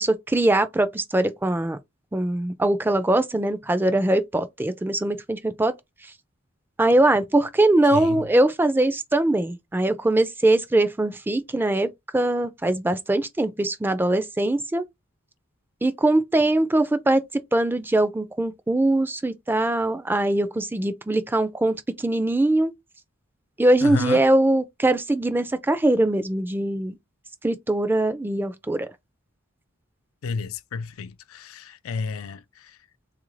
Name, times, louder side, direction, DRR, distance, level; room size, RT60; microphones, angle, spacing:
voice 1, 0.0-1.8 2.1-5.7 6.8-14.8 15.8-22.7 23.6-27.0 27.4-28.9, right 1 dB, 10° right, 0.3 m, -22 dB
voice 2, 7.9-8.2 23.8-24.2 30.2-32.8, left 4 dB, 85° left, 0.4 m, -31 dB
3.6 x 2.5 x 3.1 m
head